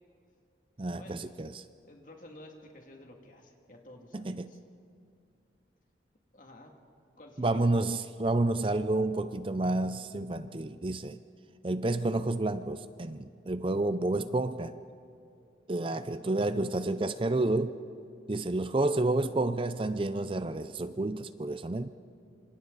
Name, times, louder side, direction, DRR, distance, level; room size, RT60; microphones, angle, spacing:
voice 1, 0.8-1.6 4.1-4.5 7.4-11.2 11.6-14.7 15.7-17.8 18.3-21.9, right 2 dB, 30° right, 12 dB, 0.5 m, -30 dB
voice 2, 1.8-4.6 6.3-6.7 7.2-7.7 15.9-16.8, left 1 dB, 45° left, 2 dB, 2.5 m, -52 dB
26.5 x 26.5 x 4.1 m, 2.6 s
head